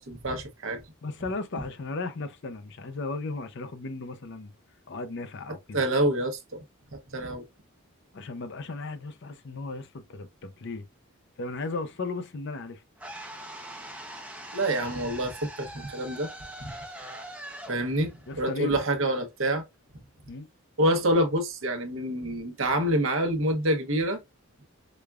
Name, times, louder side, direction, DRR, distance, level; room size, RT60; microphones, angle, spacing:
voice 1, 0.0-0.8 5.7-6.6 6.9-7.5 14.5-16.3 16.6-16.7 17.7-19.6 20.8-24.2, right 1 dB, 65° right, 0.9 m, -27 dB
voice 2, 1.0-4.5 4.9-5.8 8.1-10.9 11.4-12.8 18.3-18.8 20.3-20.5, left 3 dB, 55° left, 0.6 m, -35 dB
sound 1, 13.0-19.1, right 1 dB, 5° right, 0.6 m, -42 dB
5.0 x 2.3 x 2.3 m
head